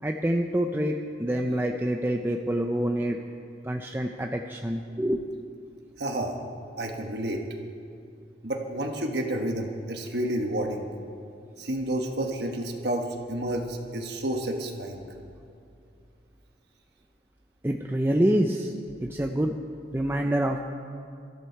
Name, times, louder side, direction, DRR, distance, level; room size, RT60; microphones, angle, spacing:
voice 1, 0.0-3.2 3.6-5.2 17.6-18.7 19.0-19.5 19.9-20.6, right 1 dB, 10° right, 3 dB, 0.5 m, -26 dB
voice 2, 6.0-6.4 6.8-7.4 8.4-10.9 11.6-15.0, right 1 dB, 60° right, 2 dB, 1.2 m, -30 dB
23.5 x 13.5 x 4.6 m, 2.4 s
head